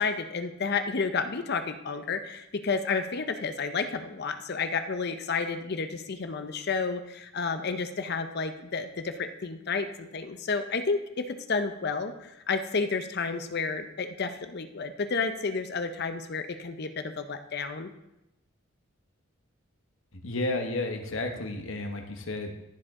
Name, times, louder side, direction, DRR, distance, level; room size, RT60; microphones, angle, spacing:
voice 1, 0.0-17.9, left 4 dB, 50° left, 8 dB, 0.6 m, -31 dB
voice 2, 20.1-22.5, left 2 dB, 70° left, 4 dB, 1.2 m, -32 dB
14.5 x 5.1 x 3.7 m, 0.88 s
head